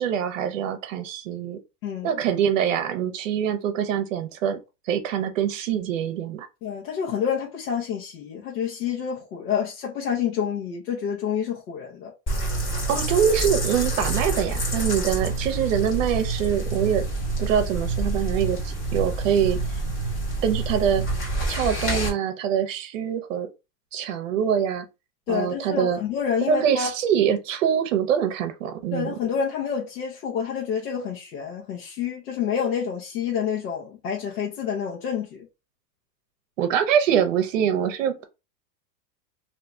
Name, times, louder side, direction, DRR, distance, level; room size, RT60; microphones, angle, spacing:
voice 1, 0.0-1.6 2.0-4.6 4.9-6.5 12.9-17.0 17.4-19.8 20.4-21.0 21.5-23.5 23.9-24.9 25.3-26.0 26.5-29.1 36.6-38.3, right 8 dB, 50° right, 0.8 m, -24 dB
voice 2, 6.6-12.1 25.3-26.9 28.9-35.5, left 7 dB, 60° left, 1.1 m, -28 dB
sound 1, 12.3-22.1, right 2 dB, 25° left, 1.6 m, -27 dB
2.8 x 2.8 x 3.5 m
supercardioid pair, 175°, 50 cm